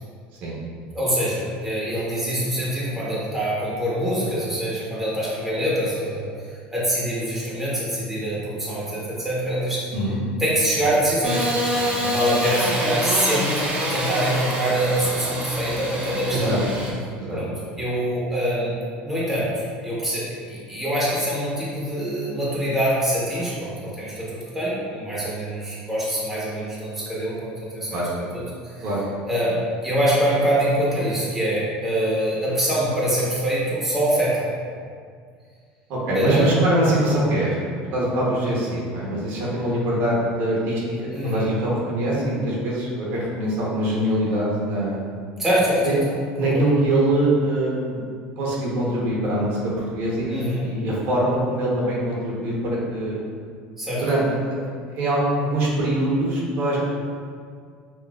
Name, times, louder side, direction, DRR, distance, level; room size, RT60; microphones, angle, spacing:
voice 1, 0.9-6.3 6.7-9.8 10.4-16.6 17.3-18.7 19.0-28.0 28.3-28.9 29.2-29.6 29.8-34.4 36.1-36.5 41.1-41.5 45.4-46.7 50.3-50.7 53.8-54.0, equal, 5° right, -8 dB, 1.3 m, -24 dB
Engine starting / Sawing, 11.2-16.9, equal, 35° right, 0.8 m, -26 dB
voice 2, 35.9-37.5 37.9-40.8 41.2-45.0 45.8-45.9 46.4-48.0 48.4-49.6 49.9-53.2 54.0-56.8, right 1 dB, 60° right, -5 dB, 1.1 m, -23 dB
5.9 x 2.7 x 2.4 m, 2.1 s
supercardioid pair, 130°, 4 cm